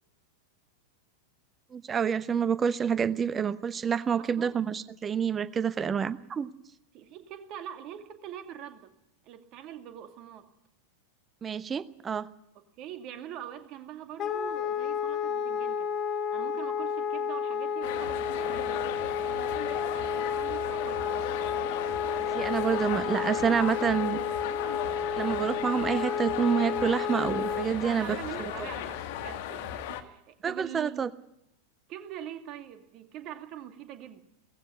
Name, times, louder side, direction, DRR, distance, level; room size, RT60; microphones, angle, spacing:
voice 1, 1.7-6.5 11.4-12.3 22.2-24.2 25.2-28.5 30.4-31.1, right 7 dB, 20° right, 16 dB, 1.0 m, -28 dB
voice 2, 4.2-4.6 6.9-8.9 9.2-10.5 12.5-15.9 16.3-18.8 19.1-21.3 22.8-24.0 27.7-31.2 31.9-34.2, right 10 dB, 40° right, 7 dB, 2.4 m, -44 dB
Wind instrument woodwind instrument, 14.2-27.7, left 6 dB, 30° left, 2.3 m, -31 dB
sound 1, 17.8-30.0, left 11 dB, 50° left, 1.8 m, -36 dB
18.0 x 15.5 x 9.6 m, 0.81 s
figure-of-eight pair, 90°, 0 cm